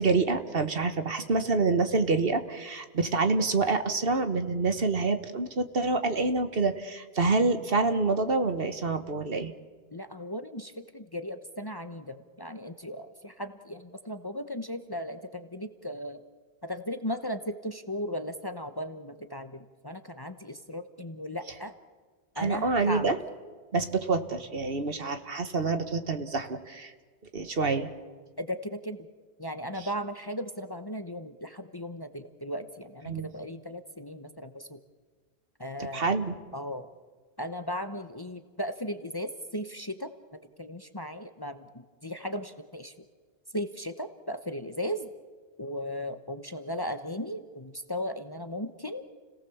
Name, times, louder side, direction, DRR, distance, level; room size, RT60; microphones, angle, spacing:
voice 1, 0.0-9.5 22.4-23.2 23.7-26.9 27.3-27.9 33.1-33.3 35.8-36.4, right 3 dB, 60° right, 9 dB, 1.6 m, -27 dB
voice 2, 9.9-16.2 16.6-21.7 22.3-23.1 28.4-29.1 29.4-34.8 35.6-36.1 36.5-36.9 37.4-40.1 40.6-42.9 43.5-45.1 45.6-49.0, equal, 20° left, 9 dB, 1.0 m, -36 dB
30.0 x 18.0 x 7.1 m, 1.5 s
omnidirectional pair, 1.1 m